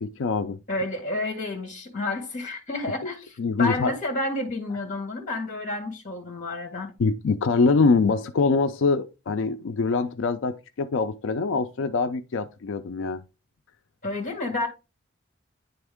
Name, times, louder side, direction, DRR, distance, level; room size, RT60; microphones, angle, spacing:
voice 1, 0.0-0.6 3.4-3.9 7.0-13.2, left 4 dB, 85° left, 0.4 m, -24 dB
voice 2, 0.7-6.9 14.0-14.7, left 2 dB, 40° left, 1.9 m, -30 dB
10.0 x 3.5 x 3.5 m
head